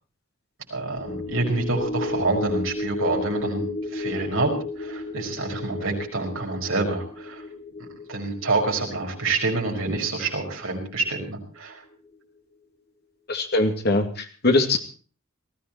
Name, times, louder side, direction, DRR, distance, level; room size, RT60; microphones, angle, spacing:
voice 1, 0.7-3.7 3.9-7.4 8.1-11.8, right 3 dB, 70° right, 1 dB, 5.3 m, -27 dB
sound 1, 1.0-11.6 11.9-12.1, left 2 dB, 25° left, 1.7 m, -34 dB
voice 2, 13.3-14.8, left 2 dB, 50° left, 5 dB, 2.5 m, -22 dB
19.0 x 15.0 x 4.4 m, 0.40 s
head